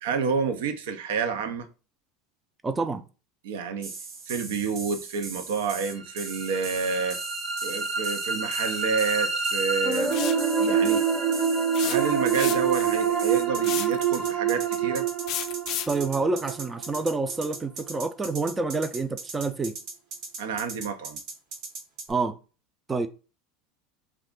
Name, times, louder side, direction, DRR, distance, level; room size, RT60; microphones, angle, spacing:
voice 1, 0.0-1.7 3.4-3.9 4.2-7.2 7.6-10.1 10.5-11.0 11.8-15.1 20.4-21.2, right 5 dB, 85° right, 0.5 m, -29 dB
voice 2, 2.6-3.0 15.9-19.8 22.1-22.3 22.9-23.1, right 3 dB, 15° right, 0.4 m, -27 dB
sound 1, 3.8-22.1, right 4 dB, 60° right, 0.9 m, -39 dB
sound 2, 6.0-18.0, right 6 dB, 30° right, 0.8 m, -27 dB
sound 3, 10.1-10.4 11.7-12.8 13.6-14.0 15.3-16.0, left 11 dB, 55° left, 0.4 m, -32 dB
2.5 x 2.2 x 3.6 m
supercardioid pair, 115°, 0 cm